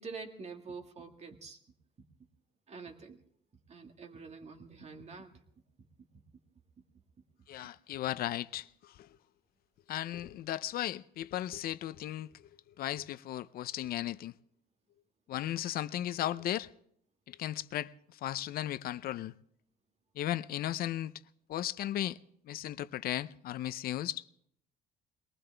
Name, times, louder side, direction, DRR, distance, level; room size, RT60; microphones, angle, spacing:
voice 1, 0.0-1.6 2.7-3.2 3.7-5.4, right 4 dB, 40° right, 1.9 m, -46 dB
voice 2, 7.5-9.1 9.9-12.3 12.8-14.3 15.3-16.7 17.3-17.9 18.2-19.3 20.2-21.1 21.5-22.2 22.5-24.2, left 13 dB, 60° left, 0.6 m, -36 dB
22.0 x 19.0 x 3.4 m
cardioid pair, 110°, 17 cm